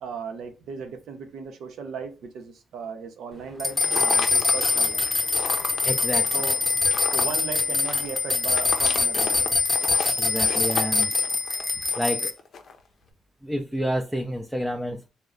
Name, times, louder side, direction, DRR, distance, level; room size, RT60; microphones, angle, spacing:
voice 1, 0.0-5.1 6.3-6.6 7.1-9.4, right 6 dB, 75° right, 5 dB, 0.7 m, -36 dB
sound 1, 3.6-12.3, left 3 dB, 15° left, 0.8 m, -24 dB
sound 2, 3.7-12.8, left 5 dB, 55° left, 0.5 m, -34 dB
voice 2, 5.8-6.3 10.2-11.1 11.9-12.3 13.4-15.1, equal, 5° right, 3 dB, 0.4 m, -29 dB
3.0 x 2.1 x 3.7 m, 0.30 s
cardioid pair, 90°, 0 cm